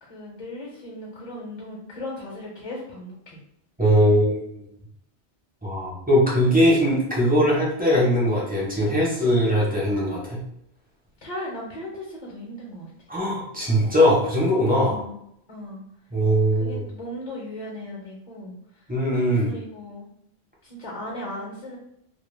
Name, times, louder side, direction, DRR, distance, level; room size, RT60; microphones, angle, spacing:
voice 1, 0.0-3.4 11.2-12.9 14.8-15.2 15.5-15.8 16.6-18.9 19.5-20.1 20.6-21.8, left 1 dB, 45° left, -3 dB, 0.7 m, -37 dB
voice 2, 3.8-4.7 5.6-10.4 13.1-14.9 16.1-16.8 18.9-19.5, equal, 10° right, -5 dB, 0.6 m, -20 dB
2.1 x 2.0 x 3.1 m, 0.74 s
omnidirectional pair, 1.1 m